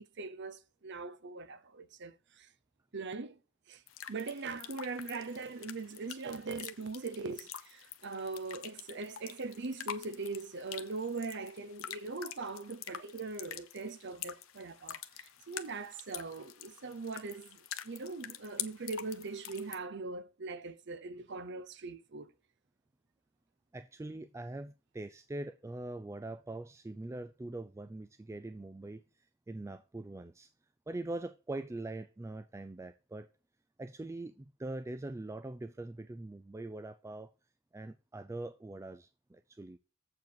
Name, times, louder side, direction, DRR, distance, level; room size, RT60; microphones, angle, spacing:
voice 1, 0.0-2.5 2.9-3.4 3.7-3.8 4.1-22.3, right 3 dB, 55° right, 0.7 m, -41 dB
sound 1, 3.9-19.8, left 10 dB, 75° left, 0.9 m, -46 dB
voice 2, 23.7-30.5 30.9-33.3 33.8-37.3 37.7-39.8, right 2 dB, 15° right, 0.3 m, -43 dB
7.8 x 4.8 x 7.0 m
head